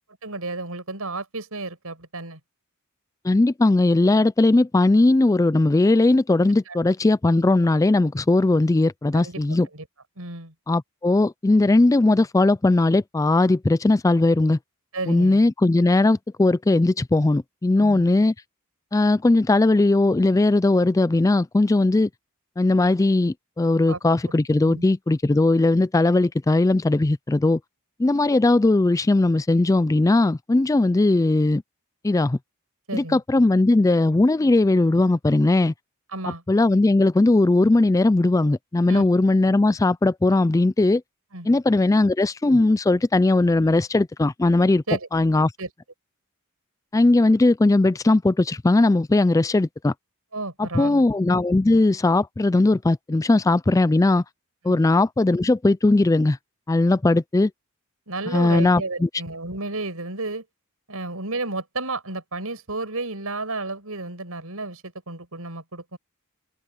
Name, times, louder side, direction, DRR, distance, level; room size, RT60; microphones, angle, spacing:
voice 1, 0.2-2.4 6.7-6.8 9.1-9.4 9.7-9.9 10.2-10.5 14.9-15.4 17.8-18.1 23.8-24.0 24.7-24.8 32.9-33.2 36.1-36.4 38.9-39.1 41.3-41.5 44.9-45.1 45.6-45.7 50.3-51.0 54.7-54.8 58.1-60.4 60.9-66.0, right 3 dB, 80° right, 5.9 m, -32 dB
voice 2, 3.2-9.7 10.7-14.6 15.1-18.3 18.9-22.1 22.6-27.6 28.0-31.6 32.0-32.4 32.9-35.7 36.5-41.0 41.5-44.8 45.1-45.5 46.9-49.9 50.6-54.2 54.6-56.4 56.7-57.5 58.3-59.1, left 2 dB, 15° left, 0.3 m, -19 dB
open air
head